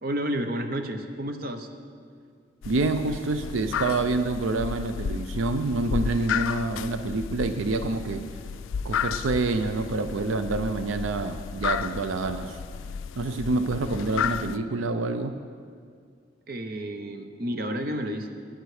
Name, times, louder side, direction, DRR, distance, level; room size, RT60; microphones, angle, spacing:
voice 1, 0.0-1.7 16.5-18.3, equal, 50° right, 6 dB, 0.8 m, -31 dB
sound 1, 2.6-14.6, left 7 dB, 85° left, 0.3 m, -33 dB
voice 2, 2.6-8.2 8.8-12.6 13.2-15.4, right 3 dB, 85° right, 9 dB, 0.5 m, -27 dB
11.0 x 9.2 x 4.9 m, 2.1 s
head